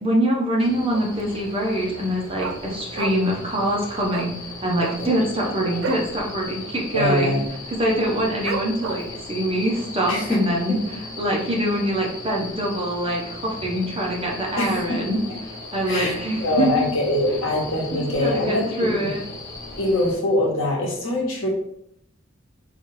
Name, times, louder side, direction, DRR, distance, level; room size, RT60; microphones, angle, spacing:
voice 1, 0.0-4.3 4.6-7.4 7.7-10.8 11.2-15.2 15.7-16.9 17.3-17.4 17.9-19.2, right 1 dB, 25° right, -2 dB, 0.7 m, -24 dB
sound 1, 0.6-20.1, left 2 dB, 20° left, 0.9 m, -37 dB
Dog, 0.9-1.3 1.6-1.7 2.0-3.4 3.7-3.8 4.1-4.3 4.7-6.1 6.5-6.6 6.9-7.3 7.8-7.9 8.4-9.2 9.7-9.8, right 4 dB, 65° right, 0.3 m, -31 dB
voice 2, 6.9-7.4 10.1-10.4 10.7-10.8 14.6-15.0 15.9-19.1 19.8-21.5, left 1 dB, 75° left, -1 dB, 1.0 m, -23 dB
4.0 x 2.4 x 3.2 m, 0.74 s
head